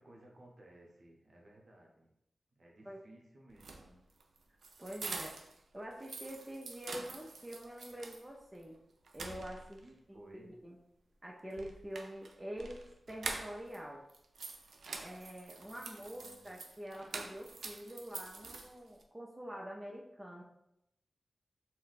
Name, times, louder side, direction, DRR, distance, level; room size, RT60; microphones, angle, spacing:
voice 1, 0.0-2.1 2.5-4.0 9.8-10.5 16.0-16.5, right 1 dB, 55° right, -1 dB, 0.8 m, -59 dB
sound 1, 3.5-5.6 5.9-8.2 8.6-8.7 9.1-9.9 11.5-13.8 14.1-19.0, right 3 dB, 90° right, 0.3 m, -46 dB
voice 2, 4.8-5.4 5.7-8.8 9.1-9.8 10.3-10.8 11.2-14.0 15.0-20.4, equal, 15° right, -2 dB, 0.4 m, -46 dB
2.5 x 2.1 x 3.9 m, 0.80 s
wide cardioid pair, 70°, 0 cm